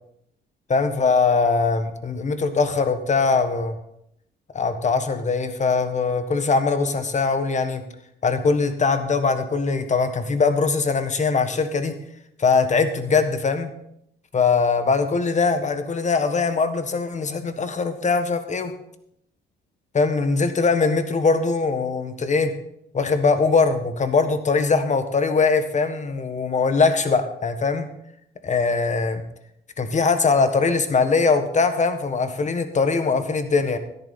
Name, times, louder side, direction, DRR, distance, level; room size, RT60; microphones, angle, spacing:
voice 1, 0.7-3.8 4.5-7.8 8.2-12.0 12.4-13.7 14.3-18.7 19.9-22.5 22.9-27.9 28.4-29.2 29.8-33.8, left 4 dB, 35° left, 9 dB, 1.5 m, -21 dB
13.0 x 11.0 x 4.2 m, 0.75 s
cardioid pair, 90°, 20 cm